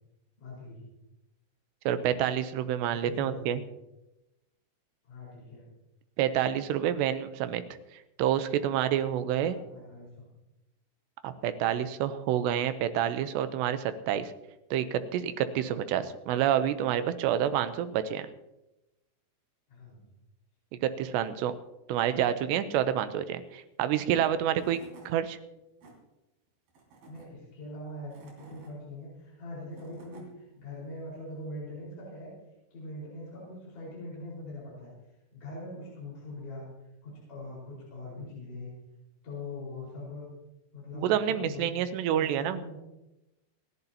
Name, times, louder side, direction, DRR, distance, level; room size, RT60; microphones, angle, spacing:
voice 1, 0.4-0.8 2.9-3.6 5.0-5.6 9.4-10.3 19.7-20.0 27.1-32.3 32.7-34.9 35.3-36.6 37.0-38.7 39.2-40.3 40.7-41.8 42.1-42.8, left 2 dB, 45° left, -6 dB, 6.2 m, -42 dB
voice 2, 1.9-3.6 6.2-7.6 8.2-9.6 11.2-14.3 14.7-18.3 20.8-21.5 21.9-24.8 25.1-25.4 40.9-42.6, right 10 dB, 85° right, 11 dB, 2.9 m, -28 dB
Tools / Wood, 24.2-24.3 24.5-25.1 25.6-25.9 26.7-27.3 27.9-28.7 29.5-30.3, right 3 dB, 60° right, 4.8 m, -53 dB
29.5 x 11.0 x 2.9 m, 0.94 s
omnidirectional pair, 5.0 m